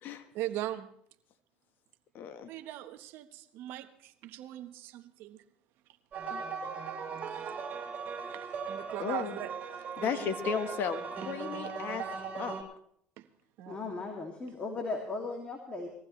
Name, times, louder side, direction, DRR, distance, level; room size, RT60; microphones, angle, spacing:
voice 1, 0.3-0.9 2.5-5.4 7.2-7.5 8.3-9.5 10.0-10.3 13.2-13.3 13.6-13.9, right 14 dB, 65° right, 1.2 m, -40 dB
voice 2, 2.1-2.5 6.3-6.7 9.0-9.3 10.0-12.0 12.3-12.6, left 7 dB, 55° left, 1.5 m, -35 dB
sound 1, 6.1-12.6, right 6 dB, 40° right, 4.7 m, -39 dB
voice 3, 13.7-15.9, left 3 dB, 30° left, 2.6 m, -37 dB
20.5 x 15.0 x 3.3 m
supercardioid pair, 85°, 4 cm